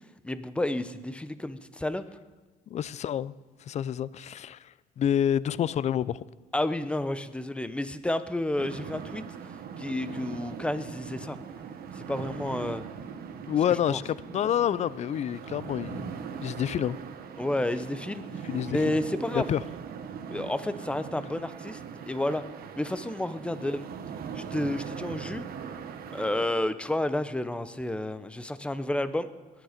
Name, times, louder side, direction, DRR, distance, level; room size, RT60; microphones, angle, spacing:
voice 1, 0.2-2.0 6.5-9.2 9.8-11.4 11.9-12.9 13.9-14.0 17.4-18.2 18.7-19.5 20.3-21.8 22.1-22.4 22.8-23.9 24.3-25.4 26.1-29.3, left 1 dB, 5° left, 0.7 m, -30 dB
voice 2, 2.7-3.3 3.7-6.2 13.5-16.1 16.4-17.0 18.4-18.8 19.3-19.6, left 9 dB, 40° left, 0.4 m, -28 dB
sound 1, 8.6-26.5, right 7 dB, 60° right, 1.2 m, -40 dB
21.0 x 9.3 x 5.1 m
cardioid pair, 110°, 17 cm